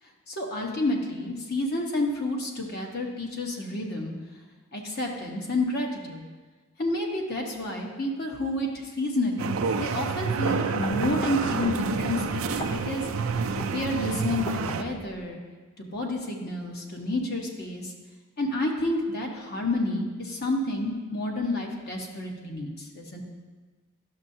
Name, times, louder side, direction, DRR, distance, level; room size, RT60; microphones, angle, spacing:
voice 1, 0.3-4.1 4.7-6.2 6.8-13.1 13.7-15.4 15.8-17.9 18.4-23.2, left 2 dB, 45° left, 0 dB, 1.0 m, -30 dB
sound 1, 9.4-14.8, right 5 dB, 65° right, 0.4 m, -28 dB
sound 2, 10.3-15.3, left 1 dB, 25° left, 0.5 m, -39 dB
11.5 x 6.6 x 2.7 m, 1.3 s
head